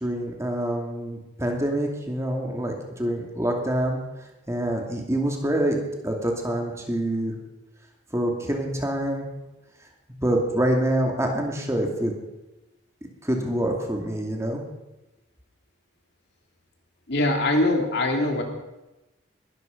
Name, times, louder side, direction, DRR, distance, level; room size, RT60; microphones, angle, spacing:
voice 1, 0.0-4.0 4.5-7.3 8.1-9.3 10.2-12.1 13.2-14.6, right 1 dB, 15° right, 1 dB, 2.5 m, -26 dB
voice 2, 17.1-18.4, left 2 dB, 60° left, 3 dB, 2.8 m, -22 dB
21.0 x 13.0 x 5.3 m, 1.0 s
head